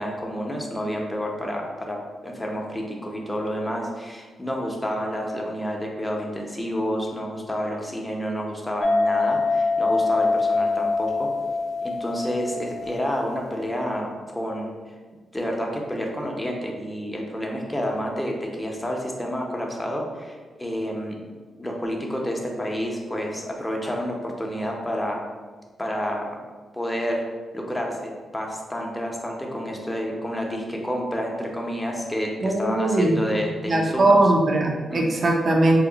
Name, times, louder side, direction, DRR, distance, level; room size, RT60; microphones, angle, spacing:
voice 1, 0.0-11.3 11.8-14.7 15.3-21.1 21.6-25.2 25.8-26.3 26.7-27.2 27.5-34.2 34.9-35.1, equal, 10° left, 0 dB, 0.6 m, -29 dB
sound 1, 8.8-13.6, left 3 dB, 80° left, 0.4 m, -24 dB
voice 2, 32.4-33.2 33.7-35.8, right 2 dB, 50° right, 1 dB, 0.4 m, -20 dB
2.8 x 2.0 x 3.8 m, 1.4 s
cardioid pair, 75°, 0 cm